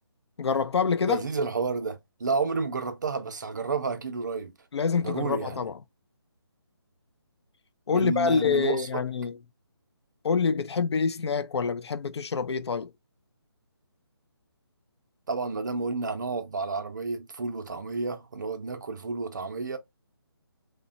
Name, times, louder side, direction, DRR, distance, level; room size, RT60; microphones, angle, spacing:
voice 1, 0.4-1.2 4.7-5.8 7.9-9.4 10.2-12.9, left 5 dB, 85° left, 0.4 m, -26 dB
voice 2, 1.1-4.5 5.0-5.7 7.9-8.9 15.3-19.8, right 4 dB, 45° right, 0.5 m, -31 dB
3.0 x 2.1 x 2.4 m
hypercardioid pair, 170°, 14 cm